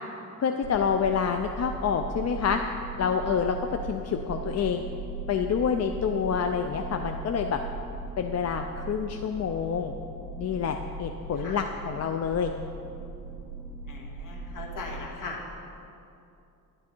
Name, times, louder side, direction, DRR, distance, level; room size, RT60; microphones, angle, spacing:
voice 1, 0.4-2.6 3.0-4.8 5.3-7.6 8.2-9.9 10.4-12.5, left 7 dB, 45° left, 5 dB, 0.5 m, -27 dB
sound 1, 0.6-15.1, right 3 dB, 50° right, 1.7 m, -39 dB
voice 2, 13.9-15.4, left 3 dB, 60° left, -2 dB, 2.0 m, -39 dB
11.0 x 10.5 x 4.5 m, 2.7 s
cardioid pair, 135°, 35 cm